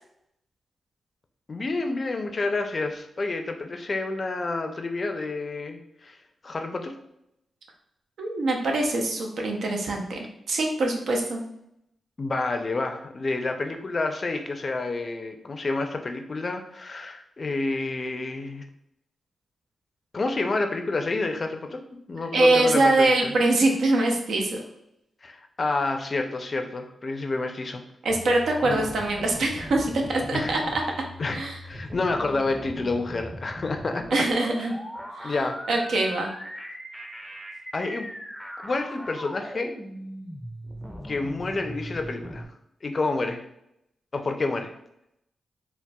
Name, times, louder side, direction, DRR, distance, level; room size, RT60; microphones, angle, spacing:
voice 1, 1.5-6.2 6.4-6.9 12.2-18.6 20.1-21.8 22.1-23.3 25.2-27.8 28.6-28.8 30.3-30.6 31.2-34.2 34.6-34.7 35.2-35.6 37.7-38.1 38.6-39.7 41.0-42.5 42.8-43.4 44.1-44.7, left 3 dB, 50° left, 5 dB, 0.4 m, -29 dB
voice 2, 8.2-11.4 22.3-24.6 28.0-30.8 31.3-31.6 34.1-34.7 35.2-35.3 35.7-36.3, right 2 dB, 75° right, 2 dB, 0.5 m, -23 dB
sound 1, 28.1-42.5, equal, 5° right, 0.5 m, -39 dB
4.0 x 2.1 x 2.2 m, 0.80 s
supercardioid pair, 50°, 0 cm